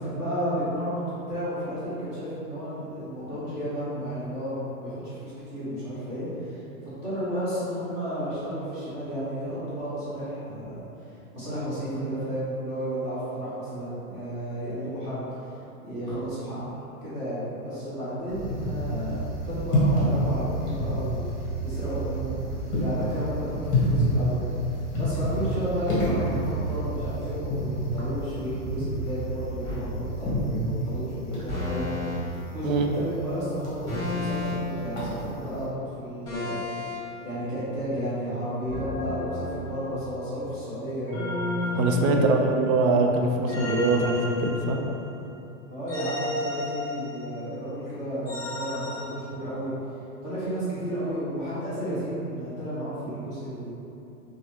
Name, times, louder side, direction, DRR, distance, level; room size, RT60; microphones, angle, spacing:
voice 1, 0.0-15.6 15.8-16.6 17.0-21.3 21.6-22.3 22.8-24.4 25.0-36.9 37.2-41.2 41.6-42.3 45.7-49.7 50.2-53.7, equal, 10° right, -15 dB, 0.3 m, -32 dB
sound 1, 18.3-35.6, equal, 30° left, 0.9 m, -29 dB
sound 2, 29.6-29.9 31.5-32.2 33.9-34.7 36.2-37.0 38.7-40.1 41.1-42.7 43.5-45.1 45.9-47.4 48.3-49.0, left 2 dB, 10° left, 1.4 m, -32 dB
voice 2, 41.7-44.8, right 3 dB, 65° right, 2 dB, 0.5 m, -23 dB
3.0 x 2.3 x 2.8 m, 2.9 s
hypercardioid pair, 140°, 45 cm